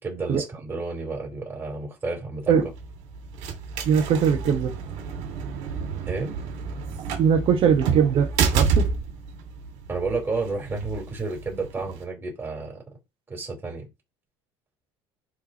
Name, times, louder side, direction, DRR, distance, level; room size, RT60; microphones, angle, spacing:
voice 1, 0.0-2.5 6.1-6.3 9.9-12.8 13.3-13.9, right 3 dB, 20° right, 4.7 m, -31 dB
sound 1, 2.4-12.0, right 6 dB, 80° right, 2.7 m, -29 dB
voice 2, 3.9-4.7 7.2-8.3 8.5-8.9, right 7 dB, 50° right, 1.7 m, -20 dB
11.0 x 4.4 x 3.2 m
cardioid pair, 125°, 12 cm